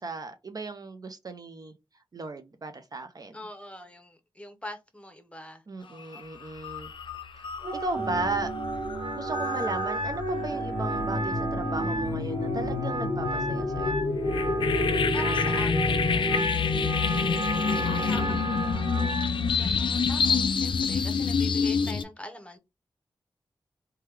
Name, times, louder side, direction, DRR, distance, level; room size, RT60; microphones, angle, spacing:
voice 1, 0.0-1.7 2.1-3.4 5.7-6.9 7.3-7.5 7.7-8.5 9.2-13.9, right 3 dB, 45° right, 0.5 m, -35 dB
voice 2, 3.3-6.2 15.1-16.8 17.4-19.2 19.5-22.6, left 1 dB, 15° left, 0.8 m, -43 dB
sound 1, 6.0-6.2 6.6-22.0, left 5 dB, 70° left, 0.4 m, -28 dB
Wind instrument woodwind instrument, 7.6-19.3, right 2 dB, 85° right, 0.6 m, -34 dB
sound 2, 8.0-18.4, right 1 dB, ahead, 1.1 m, -34 dB
3.1 x 2.2 x 3.1 m
wide cardioid pair, 70°, 9 cm